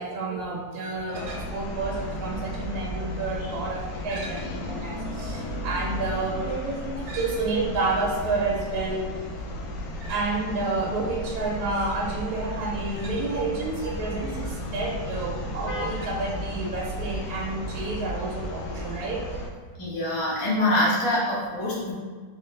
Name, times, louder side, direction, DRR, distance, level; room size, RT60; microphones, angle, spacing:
voice 1, 0.0-9.2 10.0-19.2, right 3 dB, 70° right, -2 dB, 1.0 m, -30 dB
sound 1, 1.1-19.5, left 1 dB, 70° left, 0.9 m, -34 dB
voice 2, 19.8-21.9, left 1 dB, 35° left, -6 dB, 0.5 m, -24 dB
3.3 x 2.8 x 3.1 m, 1.6 s
omnidirectional pair, 1.9 m